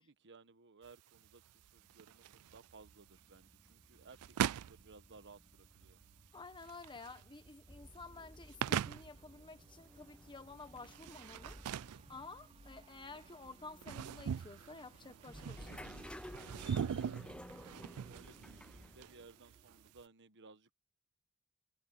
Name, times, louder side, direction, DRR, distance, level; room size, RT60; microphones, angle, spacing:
voice 1, 0.0-2.2 2.5-6.0 16.6-17.5 18.0-20.7, right 4 dB, 55° right, 1.2 m, -60 dB
sound 1, 0.8-20.0, right 8 dB, 90° right, 0.4 m, -43 dB
sound 2, 1.2-19.9, right 1 dB, 30° right, 3.7 m, -65 dB
voice 2, 6.3-11.6 12.1-15.9, left 3 dB, 20° left, 1.4 m, -52 dB
sound 3, 7.7-19.3, left 1 dB, 5° left, 0.7 m, -54 dB
head